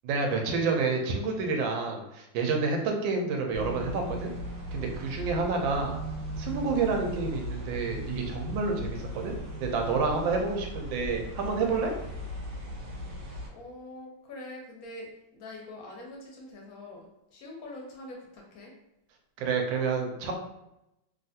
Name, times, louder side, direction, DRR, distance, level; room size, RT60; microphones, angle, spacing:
voice 1, 0.0-4.3 4.7-6.0 6.4-11.9 19.4-20.3, right 4 dB, 80° right, 2 dB, 1.3 m, -29 dB
sound 1, 3.5-13.5, equal, 55° right, 1.0 m, -38 dB
voice 2, 13.5-15.1 15.3-17.1 17.3-18.7, left 1 dB, 70° left, -1 dB, 0.9 m, -44 dB
3.2 x 2.4 x 2.6 m, 0.87 s
omnidirectional pair, 2.1 m